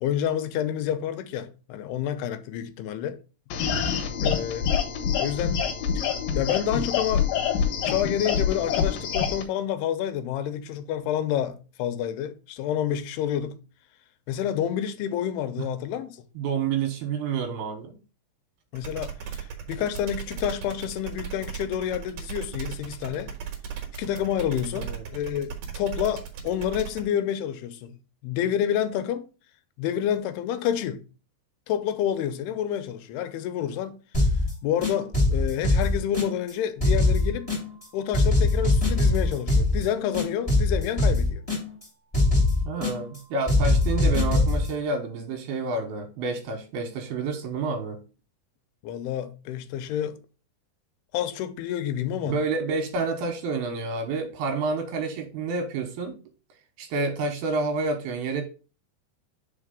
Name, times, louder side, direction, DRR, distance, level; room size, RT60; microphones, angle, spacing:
voice 1, 0.0-3.2 4.2-4.8 5.2-5.6 6.0-6.1 6.4-7.3 7.8-13.6 14.3-16.2 18.7-23.3 24.0-28.0 28.2-29.2 29.8-31.0 31.7-34.0 34.6-37.5 37.9-41.4 48.8-50.2 51.1-52.4, left 10 dB, 85° left, 2.7 m, -29 dB
sound 1, 3.5-9.4, left 7 dB, 70° left, 2.4 m, -26 dB
voice 2, 16.4-17.9 24.8-25.0 42.7-48.0 52.2-56.2 56.8-58.4, right 4 dB, 80° right, 3.0 m, -29 dB
sound 2, 18.8-27.0, right 7 dB, 65° right, 2.6 m, -36 dB
sound 3, 34.1-34.5 34.8-36.5 36.8-37.8 38.1-39.8 40.1-41.8 42.1-43.2 43.5-44.7, left 2 dB, 10° left, 2.6 m, -22 dB
5.1 x 4.8 x 5.1 m
omnidirectional pair, 4.6 m